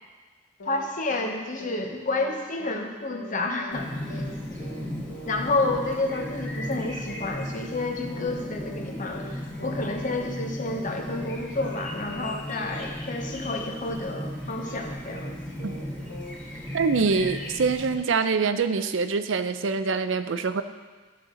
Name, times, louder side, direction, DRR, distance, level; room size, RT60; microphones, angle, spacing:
sound 1, 0.6-1.3 1.6-1.8 2.1-2.3 2.6-2.8 3.1-3.3 3.6-3.8 4.1-4.3 4.6-4.8 5.1-5.3 5.6-5.8 6.1-6.3 6.6-6.8 7.1-7.3 7.6-8.3 8.6-8.8 9.1-9.3 9.6-9.8 10.1-10.3 10.6-10.8 11.1-11.3 11.6-11.8 12.1-12.3 12.6-12.8 13.1-13.3 13.6-13.8 14.1-14.3 14.6-14.8 15.1-15.3 15.6-15.8 16.1-16.3, right 1 dB, 85° left, 1.5 m, -42 dB
voice 1, 0.6-4.2 5.3-15.3, left 2 dB, 45° left, 2 dB, 1.0 m, -30 dB
Chirp tweet, 3.7-17.9, left 1 dB, 10° left, 1.9 m, -36 dB
voice 2, 16.7-20.6, right 4 dB, 80° right, 10 dB, 0.5 m, -24 dB
13.5 x 6.4 x 3.9 m, 1.4 s
head